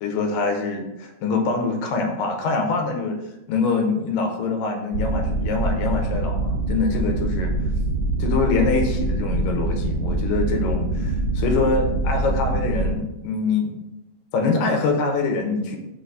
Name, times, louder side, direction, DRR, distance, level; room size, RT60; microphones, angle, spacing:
voice 1, 0.0-3.2 3.5-7.5 8.2-13.8 14.3-15.8, left 4 dB, 75° left, 3 dB, 2.3 m, -24 dB
sound 1, 4.9-13.0, right 2 dB, 65° right, 2.2 m, -24 dB
5.7 x 3.9 x 4.6 m, 0.91 s
omnidirectional pair, 4.5 m